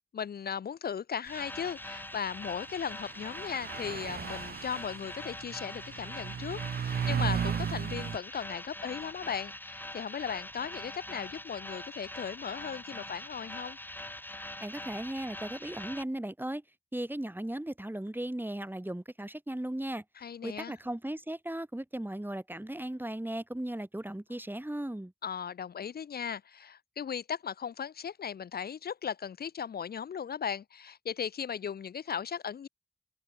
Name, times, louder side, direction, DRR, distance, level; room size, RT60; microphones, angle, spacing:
voice 1, 0.1-13.8 20.2-20.8 25.2-32.7, left 7 dB, 75° left, 0.4 m, -37 dB
sound 1, 1.3-16.0, left 1 dB, 10° left, 0.8 m, -43 dB
sound 2, 2.5-2.6 3.1-8.2, right 7 dB, 75° right, 0.4 m, -35 dB
voice 2, 14.6-16.6 16.9-20.0 20.4-25.1, right 1 dB, 10° right, 1.8 m, -37 dB
wide cardioid pair, 85°, 16 cm